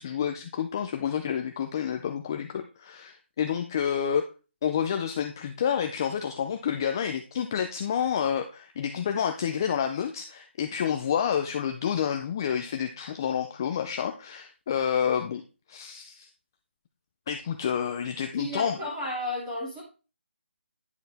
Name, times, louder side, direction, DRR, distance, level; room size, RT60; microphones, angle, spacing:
voice 1, 0.0-4.3 4.6-15.4 15.7-16.3 17.3-18.8, left 8 dB, 20° left, 6 dB, 0.4 m, -29 dB
voice 2, 18.4-19.8, left 1 dB, 10° right, -4 dB, 2.9 m, -33 dB
10.0 x 6.5 x 3.4 m, 0.33 s
hypercardioid pair, 175°, 6 cm